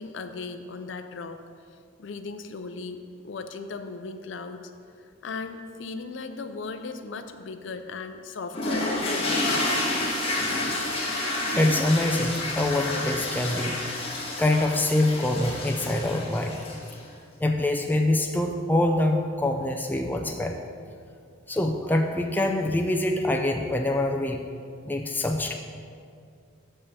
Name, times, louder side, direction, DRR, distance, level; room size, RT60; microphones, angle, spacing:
voice 1, 0.0-1.4 2.0-3.0 3.2-4.6 5.0-9.8, left 4 dB, 65° left, 7 dB, 0.5 m, -37 dB
sound 1, 8.5-17.0, left 2 dB, 30° left, 1.3 m, -29 dB
voice 2, 11.5-13.8 14.4-16.6 17.4-20.6 21.5-24.4 24.9-25.5, left 1 dB, 10° left, 2 dB, 0.4 m, -25 dB
7.0 x 5.5 x 6.7 m, 2.3 s
head